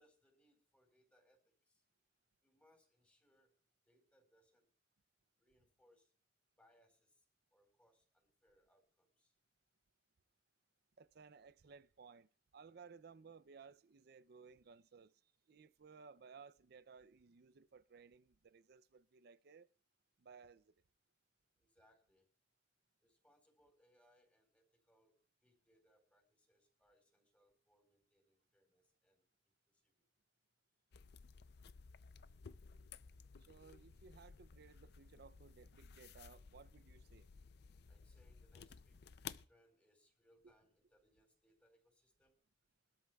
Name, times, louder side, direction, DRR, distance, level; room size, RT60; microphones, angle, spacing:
voice 1, 0.0-1.8 2.4-3.5 3.9-4.7 5.4-6.1 6.6-7.2 7.5-9.3 21.6-22.3 23.0-29.2 29.7-29.9 37.9-39.0 39.4-42.4, equal, 10° left, 4.3 m, -74 dB
voice 2, 11.0-19.7 20.2-20.7 33.4-37.3 40.4-40.5, right 5 dB, 60° right, 0.5 m, -60 dB
sound 1, 30.9-39.5, left 6 dB, 65° left, 0.5 m, -56 dB
23.0 x 13.0 x 2.3 m
head